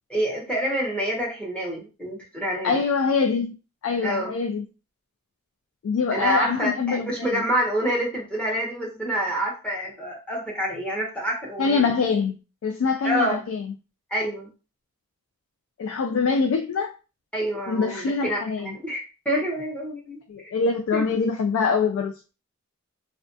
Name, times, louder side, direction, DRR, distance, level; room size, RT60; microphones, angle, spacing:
voice 1, 0.1-2.8 4.0-4.3 6.1-11.9 13.0-13.4 14.1-14.5 17.3-20.5 20.9-21.0, equal, 5° left, -3 dB, 0.8 m, -27 dB
voice 2, 2.6-3.5 3.8-4.6 5.8-7.4 11.6-12.4 12.6-13.6 15.8-16.9 17.7-18.7 20.3-22.1, left 5 dB, 65° left, 5 dB, 0.3 m, -24 dB
2.3 x 2.2 x 2.5 m, 0.31 s
head